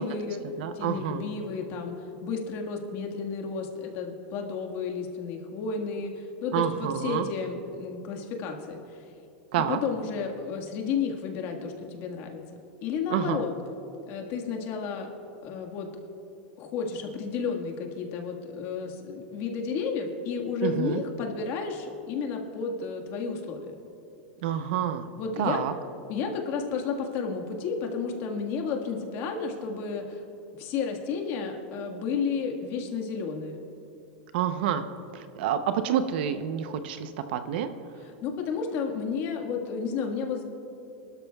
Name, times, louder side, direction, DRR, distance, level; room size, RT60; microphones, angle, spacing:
voice 1, 0.0-0.4 0.7-9.0 9.6-12.4 12.8-13.5 14.1-15.1 15.4-15.9 16.6-23.7 25.2-25.6 26.1-30.2 30.6-33.6 38.2-40.5, left 5 dB, 45° left, 2 dB, 1.7 m, -32 dB
voice 2, 0.6-1.3 6.5-7.3 9.5-9.8 13.1-13.4 20.6-21.0 24.4-25.1 25.4-25.7 34.3-34.8 35.1-37.7, right 9 dB, 65° right, 10 dB, 0.8 m, -28 dB
23.0 x 13.0 x 2.4 m, 2.8 s
supercardioid pair, 145°, 6 cm